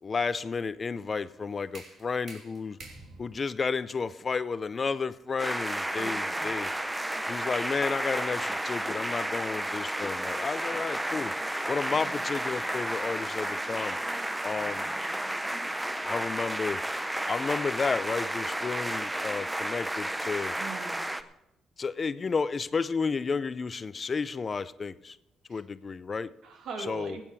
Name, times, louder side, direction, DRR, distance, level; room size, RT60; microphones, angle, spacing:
voice 1, 0.0-2.8 3.2-6.7 7.3-11.3 11.7-14.0 14.4-14.9 16.0-16.8 17.3-20.5 21.8-25.2 25.5-26.3 26.9-27.2, left 5 dB, 35° left, 15 dB, 0.5 m, -32 dB
sound 1, 1.1-6.8, right 3 dB, 55° right, 3.0 m, -52 dB
sound 2, 5.4-21.2, right 1 dB, 10° right, 0.7 m, -32 dB
voice 2, 6.0-6.6 12.0-12.2 20.6-21.2 25.5-25.6 26.4-27.2, right 4 dB, 75° right, 3 dB, 2.3 m, -41 dB
16.0 x 8.9 x 4.7 m, 0.89 s
cardioid pair, 90°, 0 cm